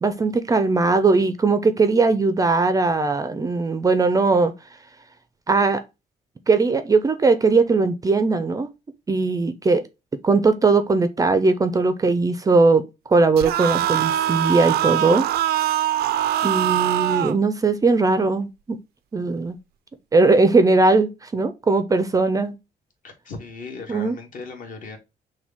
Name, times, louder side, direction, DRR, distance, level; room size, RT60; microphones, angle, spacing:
voice 1, 0.0-4.5 5.5-5.8 6.5-8.7 9.1-9.8 10.2-15.3 16.4-18.8 19.1-19.6 20.1-22.5 23.9-24.2, right 3 dB, 20° right, 0.4 m, -19 dB
sound 1, 13.4-17.4, right 12 dB, 85° right, 0.4 m, -22 dB
voice 2, 23.0-25.0, left 4 dB, 55° left, 1.6 m, -37 dB
6.0 x 2.2 x 3.5 m
cardioid pair, 150°, 16 cm